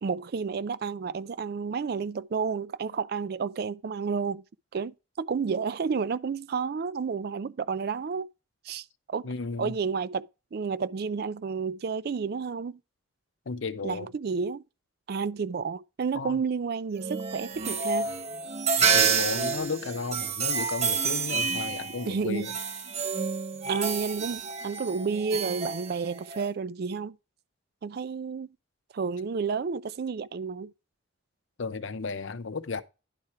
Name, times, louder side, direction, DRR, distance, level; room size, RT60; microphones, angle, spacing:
voice 1, 0.0-4.4 4.7-8.3 8.6-9.3 9.6-12.8 13.8-14.6 15.1-18.1 22.1-22.5 23.7-27.2 27.8-28.5 28.9-30.7, right 5 dB, 55° right, 0.4 m, -31 dB
voice 2, 9.2-9.8 13.5-14.1 16.1-16.4 18.9-22.6 31.6-32.8, left 4 dB, 80° left, 0.7 m, -34 dB
sound 1, 17.0-26.5, right 5 dB, 35° right, 0.7 m, -29 dB
11.0 x 4.3 x 4.7 m
head